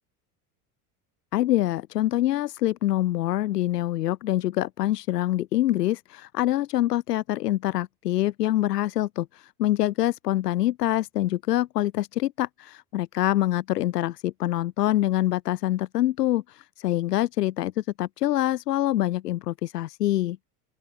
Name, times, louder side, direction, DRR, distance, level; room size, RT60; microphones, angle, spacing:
voice 1, 1.3-20.4, left 14 dB, 80° left, 3.0 m, -25 dB
open air
hypercardioid pair, 80°, 47 cm